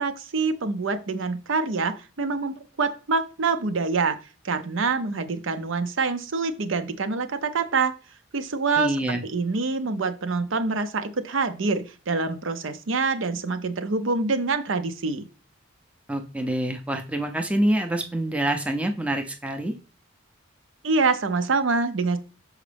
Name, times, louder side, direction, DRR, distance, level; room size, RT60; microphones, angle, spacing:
voice 1, 0.0-4.2 4.4-7.9 8.3-15.3 20.8-22.2, right 4 dB, 70° right, 10 dB, 0.6 m, -26 dB
voice 2, 8.8-9.2 16.1-19.7, right 1 dB, 5° right, 4 dB, 0.6 m, -26 dB
6.3 x 4.8 x 3.4 m, 0.35 s
head